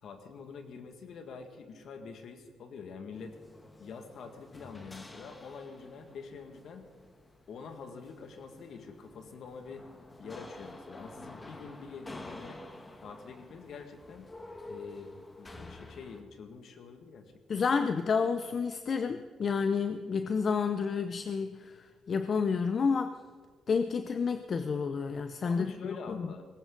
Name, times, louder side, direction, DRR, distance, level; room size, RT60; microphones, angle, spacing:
voice 1, 0.0-3.4 3.8-6.9 7.5-9.9 10.2-12.6 13.0-14.3 14.7-17.8 25.5-26.5, left 5 dB, 65° left, 6 dB, 2.0 m, -46 dB
sound 1, 3.1-16.2, left 2 dB, 20° left, 1.6 m, -50 dB
voice 2, 17.5-23.2 23.7-26.3, left 5 dB, 45° left, 9 dB, 0.7 m, -30 dB
19.5 x 17.5 x 4.0 m, 1.5 s
cardioid pair, 90°, 0 cm